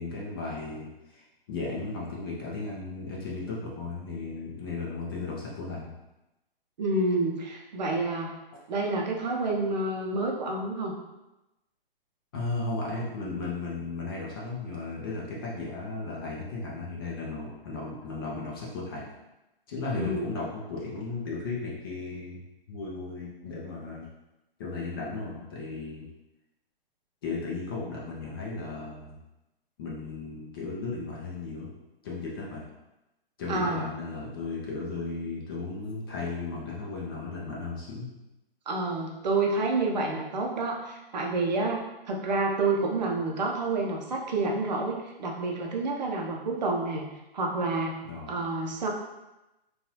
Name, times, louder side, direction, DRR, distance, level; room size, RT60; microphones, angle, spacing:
voice 1, 0.0-5.9 12.3-19.1 19.7-22.4 22.7-24.1 24.6-26.1 27.2-29.2 29.8-31.7 32.0-32.6 33.4-38.1 48.1-48.3, left 3 dB, 25° left, -4 dB, 0.5 m, -35 dB
voice 2, 6.8-8.3 8.7-10.9 19.9-20.3 33.5-33.8 38.7-47.1 47.3-47.9 48.3-48.9, right 3 dB, 45° right, 0 dB, 0.6 m, -28 dB
3.8 x 2.4 x 2.7 m, 0.96 s
figure-of-eight pair, 130°, 30 cm